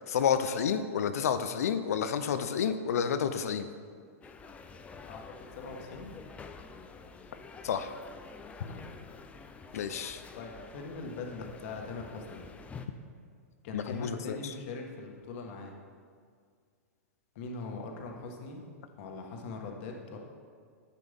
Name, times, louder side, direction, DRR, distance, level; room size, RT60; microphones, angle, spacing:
voice 1, 0.1-3.7 7.6-7.9 9.7-10.2 13.7-14.5, left 7 dB, 75° left, 10 dB, 0.6 m, -30 dB
sound 1, 4.2-12.9, left 4 dB, 15° left, 0.5 m, -48 dB
voice 2, 5.0-6.1 8.6-8.9 10.3-12.4 13.6-15.7 17.4-18.6 19.0-20.2, left 3 dB, 55° left, 1 dB, 1.5 m, -41 dB
10.0 x 8.4 x 3.6 m, 2.1 s
hypercardioid pair, 120°, 8 cm